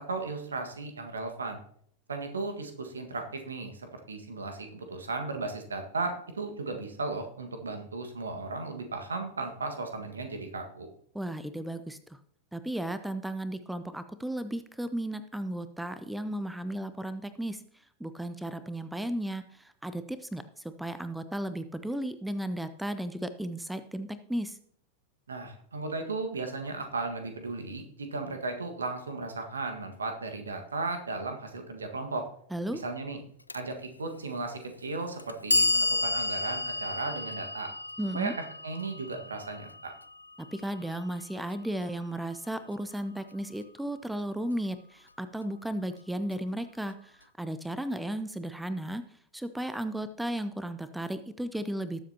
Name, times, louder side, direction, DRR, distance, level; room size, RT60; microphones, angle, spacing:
voice 1, 0.1-1.6 2.1-10.9 25.3-32.3 32.7-33.2 33.5-37.7 38.1-38.4 38.6-39.9, right 3 dB, 70° right, 5 dB, 1.7 m, -35 dB
voice 2, 11.1-12.2 12.5-17.6 18.0-24.6 32.5-32.8 38.0-38.3 40.4-49.0 49.3-52.0, right 1 dB, 5° right, 12 dB, 0.6 m, -35 dB
Clock, 33.5-33.6 34.6-34.7 35.2-41.2, left 3 dB, 80° left, 0.4 m, -31 dB
19.0 x 7.4 x 2.9 m, 0.65 s
figure-of-eight pair, 90°, 0 cm